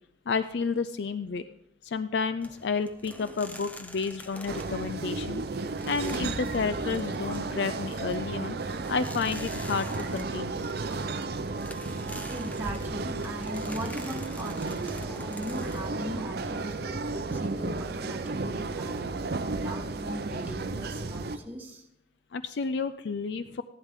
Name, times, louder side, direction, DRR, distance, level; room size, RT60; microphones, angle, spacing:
voice 1, 0.3-1.5 1.8-5.4 5.9-10.7 22.3-23.6, left 5 dB, 65° left, 12 dB, 0.4 m, -31 dB
sound 1, 2.4-17.4, left 1 dB, 10° left, 0.6 m, -46 dB
sound 2, 4.5-21.4, right 3 dB, 55° right, 0.6 m, -33 dB
voice 2, 12.3-21.9, equal, 10° right, -1 dB, 1.4 m, -39 dB
14.5 x 11.5 x 3.7 m, 0.85 s
head